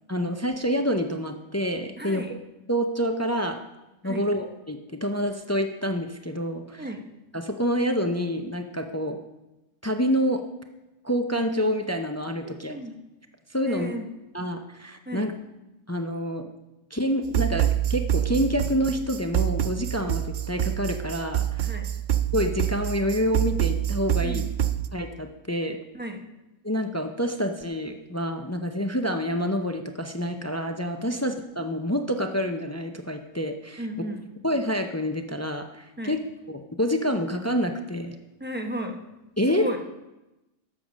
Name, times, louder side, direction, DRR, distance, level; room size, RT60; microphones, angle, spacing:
voice 1, 0.1-2.4 2.7-3.6 4.0-6.8 7.3-9.2 9.8-10.4 11.0-12.7 13.5-13.9 14.3-15.3 15.9-16.5 16.9-21.7 22.3-24.4 24.9-25.8 26.6-33.8 34.4-36.2 36.5-38.2 39.4-39.7, equal, 25° left, 5 dB, 0.4 m, -27 dB
voice 2, 2.0-2.3 4.0-4.3 6.7-7.0 12.4-12.9 13.6-14.1 15.0-15.3 21.6-21.9 24.2-24.5 25.9-26.2 31.1-31.2 33.8-34.2 36.0-36.2 38.4-39.0 39.5-39.8, right 1 dB, 10° right, 3 dB, 0.9 m, -34 dB
sound 1, 17.2-24.9, right 11 dB, 70° right, 0.4 m, -26 dB
11.5 x 7.6 x 6.2 m, 1.0 s
omnidirectional pair, 1.4 m